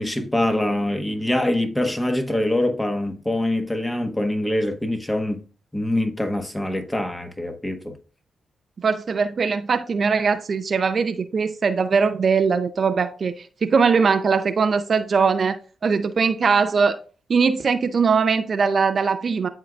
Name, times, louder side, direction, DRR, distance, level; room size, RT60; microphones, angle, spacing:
voice 1, 0.0-5.4 5.7-8.0, left 1 dB, 15° left, 1.3 m, -24 dB
voice 2, 8.8-17.0 17.3-19.5, right 5 dB, 55° right, 0.5 m, -21 dB
11.0 x 3.8 x 2.4 m
supercardioid pair, 45°, 0 cm